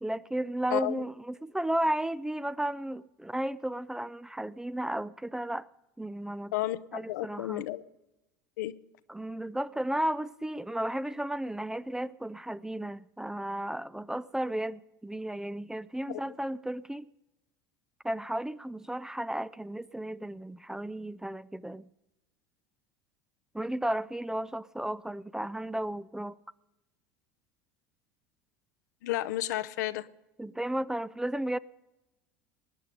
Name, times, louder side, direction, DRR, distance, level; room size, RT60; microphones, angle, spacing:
voice 1, 0.0-5.7 6.0-6.5 6.9-7.6 9.1-17.1 18.0-21.8 23.5-26.4 30.4-31.6, right 1 dB, 5° right, 0.4 m, -34 dB
voice 2, 0.7-1.0 6.5-7.8 8.6-8.7 16.1-16.2 29.0-30.1, left 15 dB, 80° left, 0.6 m, -32 dB
20.0 x 9.7 x 5.2 m
hypercardioid pair, 85°, 10 cm